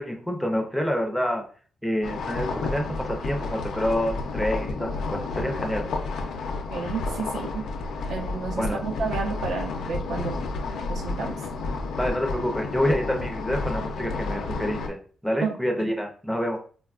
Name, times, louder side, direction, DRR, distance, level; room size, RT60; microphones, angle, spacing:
voice 1, 0.0-1.4 1.8-5.9 8.6-8.8 12.0-15.0 15.2-16.6, equal, ahead, 2 dB, 0.4 m, -27 dB
sound 1, 2.0-14.9, left 3 dB, 80° left, 0.5 m, -31 dB
voice 2, 6.7-7.6 8.1-10.4 10.9-11.4 15.4-15.5, right 4 dB, 80° right, 2 dB, 0.7 m, -31 dB
4.0 x 2.3 x 2.3 m, 0.42 s
wide cardioid pair, 165°, 0 cm